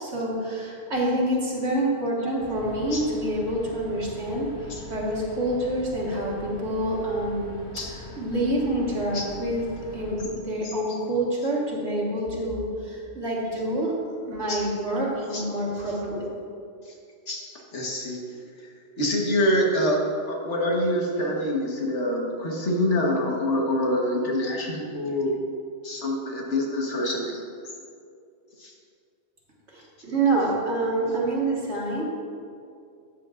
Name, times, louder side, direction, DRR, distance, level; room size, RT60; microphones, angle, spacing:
voice 1, 0.0-7.6 7.9-9.7 9.9-16.3 29.7-32.0, right 1 dB, 65° right, -4 dB, 1.9 m, -27 dB
sound 1, 2.4-10.2, left 2 dB, 30° left, 1.0 m, -42 dB
voice 2, 17.7-18.2 19.0-20.0 20.3-25.3 25.8-27.4 28.6-28.7, left 1 dB, 75° left, -2 dB, 1.7 m, -25 dB
13.0 x 8.2 x 2.5 m, 2.4 s
omnidirectional pair, 1.2 m